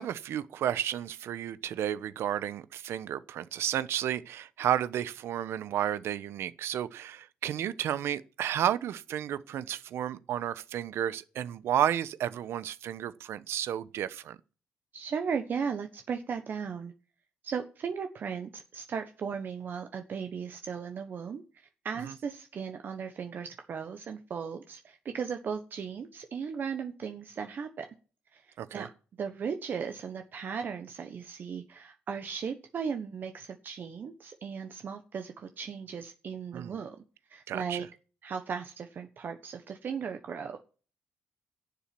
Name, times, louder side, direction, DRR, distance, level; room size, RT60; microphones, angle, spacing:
voice 1, 0.0-14.4 22.0-22.1 28.6-28.9 36.5-36.8 37.5-37.9, right 10 dB, 75° right, 1.0 m, -32 dB
voice 2, 14.9-16.9 17.4-27.9 28.3-28.9 29.2-37.0 37.3-37.9 38.2-40.6, right 6 dB, 50° right, 1.2 m, -37 dB
11.5 x 7.4 x 7.7 m
cardioid pair, 110°, 4 cm